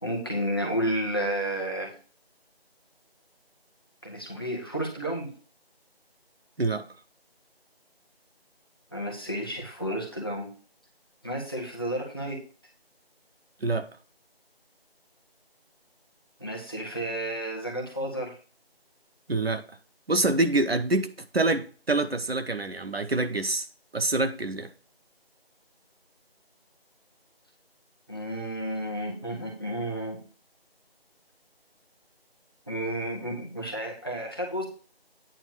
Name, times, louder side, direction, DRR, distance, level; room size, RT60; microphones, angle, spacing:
voice 1, 0.0-1.9 4.0-5.3 8.9-10.5 11.2-12.4 16.4-18.4 28.1-30.2 32.7-34.7, right 1 dB, 25° left, 1.3 m, -31 dB
voice 2, 19.3-19.6 20.1-23.7 23.9-24.7, right 2 dB, 70° right, 1.1 m, -26 dB
9.0 x 3.5 x 6.9 m
figure-of-eight pair, 175°, 31 cm